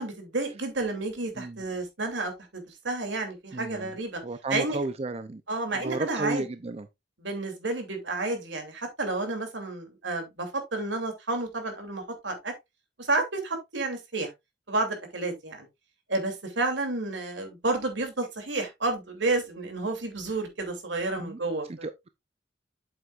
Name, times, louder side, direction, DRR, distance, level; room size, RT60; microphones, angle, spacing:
voice 1, 0.0-4.2 4.5-4.8 5.5-6.4 7.2-12.5 13.1-14.3 14.7-15.7 16.1-21.9, right 2 dB, 85° right, 2.9 m, -30 dB
voice 2, 3.5-3.9 4.2-5.4 5.7-6.9 21.2-21.4 21.7-22.1, right 2 dB, 35° right, 0.5 m, -33 dB
8.0 x 7.9 x 2.4 m
head